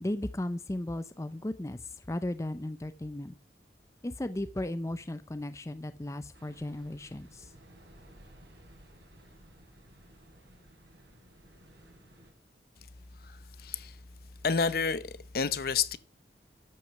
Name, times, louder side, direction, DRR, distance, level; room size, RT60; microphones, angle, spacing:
voice 1, 0.0-1.8 2.1-3.3 4.0-7.5, left 1 dB, 15° left, 0.5 m, -35 dB
sound 1, 6.3-12.3, right 1 dB, 85° right, 4.3 m, -56 dB
voice 2, 13.6-13.9 14.4-16.0, left 5 dB, 55° left, 0.7 m, -29 dB
12.5 x 6.2 x 5.9 m
head